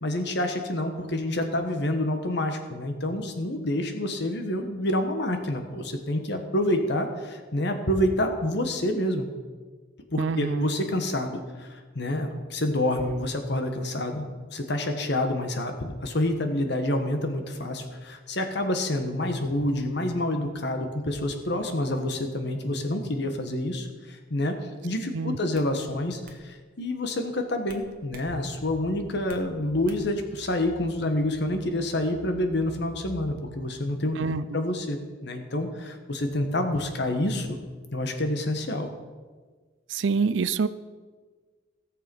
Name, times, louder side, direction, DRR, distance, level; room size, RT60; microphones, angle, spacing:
voice 1, 0.0-9.3 10.1-14.2 14.5-37.6 37.9-38.9, left 1 dB, 60° left, 6 dB, 1.4 m, -28 dB
voice 2, 10.2-10.7 25.1-25.4 34.2-34.4 39.9-40.7, right 5 dB, 70° right, 15 dB, 0.5 m, -26 dB
sound 1, 24.7-25.0 25.5-25.7 26.2-26.4 27.7-28.3 28.7-29.5 29.9-30.2, right 3 dB, 50° right, 1.3 m, -48 dB
sound 2, 28.3-33.7, right 1 dB, 10° right, 0.8 m, -48 dB
17.0 x 6.8 x 5.4 m, 1.4 s
head